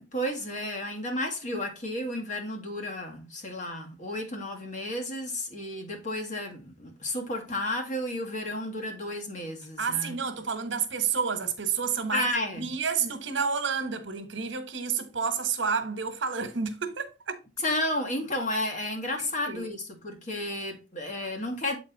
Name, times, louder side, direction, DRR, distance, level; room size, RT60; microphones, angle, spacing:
voice 1, 0.0-10.2 12.1-12.7 17.6-21.8, left 1 dB, 40° left, 1.8 m, -32 dB
voice 2, 9.8-12.3 12.6-17.4 19.2-19.7, right 6 dB, 80° right, 1.2 m, -30 dB
7.7 x 4.3 x 3.9 m
head